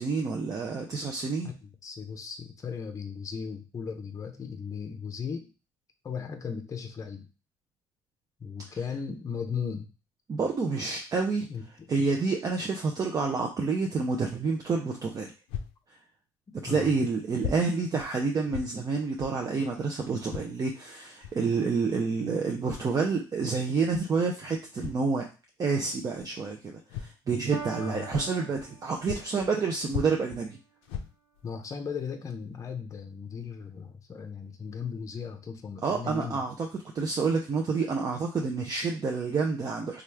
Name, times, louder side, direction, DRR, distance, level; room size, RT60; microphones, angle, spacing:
voice 1, 0.0-1.5 10.3-11.5 11.9-15.3 16.6-25.3 25.6-30.6 35.8-40.0, right 4 dB, 35° right, 1 dB, 0.5 m, -28 dB
voice 2, 1.4-5.5 6.0-7.3 8.4-9.9 11.5-11.9 16.7-16.9 27.7-28.0 31.4-36.4, left 6 dB, 35° left, 5 dB, 0.6 m, -37 dB
sound 1, 15.5-15.7 16.6-16.7 17.4-17.6 18.0-18.1 18.5-18.7 19.2-19.4 20.3-20.5 21.2-21.4 22.5-22.9 23.9-24.0 24.8-25.0 26.1-26.3 26.9-27.1 27.6-27.7 28.1-28.7 29.0-29.6 29.9-30.4 30.8-31.4 32.0-32.1 32.5-32.6, left 8 dB, 80° left, 0.4 m, -38 dB
Piano, 27.5-29.5, right 5 dB, 75° right, 1.0 m, -42 dB
3.0 x 2.4 x 3.3 m, 0.32 s
supercardioid pair, 80°, 10 cm